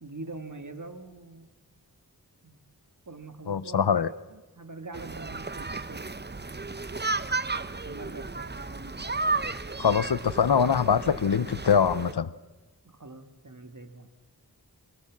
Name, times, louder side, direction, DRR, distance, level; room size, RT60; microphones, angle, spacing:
voice 1, 0.0-1.5 2.4-2.6 3.1-7.0 7.8-9.1 12.8-14.1, right 3 dB, 50° right, 1.9 m, -44 dB
voice 2, 3.5-4.1 9.8-12.3, left 7 dB, 90° left, 0.7 m, -23 dB
sound 1, 4.9-12.1, right 3 dB, 25° right, 0.7 m, -33 dB
25.5 x 18.5 x 7.3 m
wide cardioid pair, 45°, 38 cm